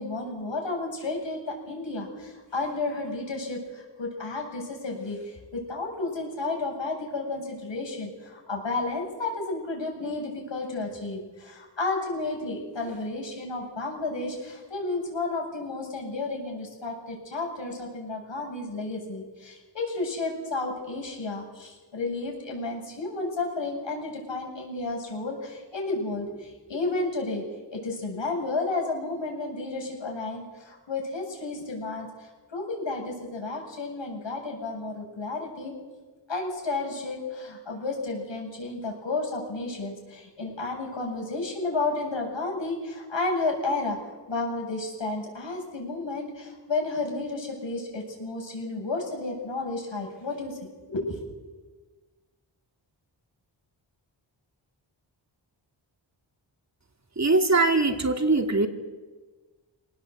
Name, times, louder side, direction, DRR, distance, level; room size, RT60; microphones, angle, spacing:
voice 1, 0.0-27.4 27.7-35.7 36.3-50.6 50.9-51.2, left 3 dB, 70° left, 1 dB, 8.0 m, -32 dB
voice 2, 57.2-58.7, right 3 dB, 35° right, 5 dB, 2.8 m, -22 dB
25.5 x 19.0 x 8.2 m, 1.3 s
cardioid pair, 55°, 46 cm